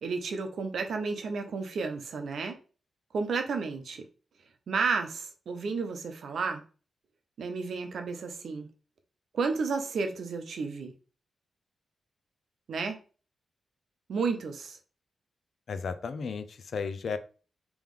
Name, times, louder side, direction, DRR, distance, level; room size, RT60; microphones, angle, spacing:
voice 1, 0.0-2.6 3.1-4.1 4.7-6.6 7.4-8.7 9.3-10.9 12.7-13.0 14.1-14.8, right 4 dB, 70° right, 0.7 m, -32 dB
voice 2, 15.7-17.2, left 5 dB, 60° left, 0.4 m, -34 dB
3.5 x 3.0 x 3.6 m
wide cardioid pair, 130°, 0 cm